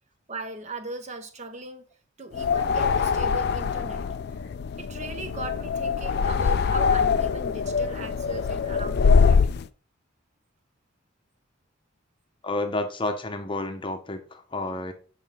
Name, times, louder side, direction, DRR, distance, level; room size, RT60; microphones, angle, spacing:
voice 1, 0.3-1.9 2.2-4.1 4.4-4.5 4.8-9.5, right 2 dB, 35° right, 0.7 m, -38 dB
sound 1, 2.3-9.6, left 5 dB, 50° left, 0.3 m, -23 dB
voice 2, 12.4-14.9, left 2 dB, 25° left, 0.7 m, -30 dB
6.5 x 5.4 x 3.6 m
head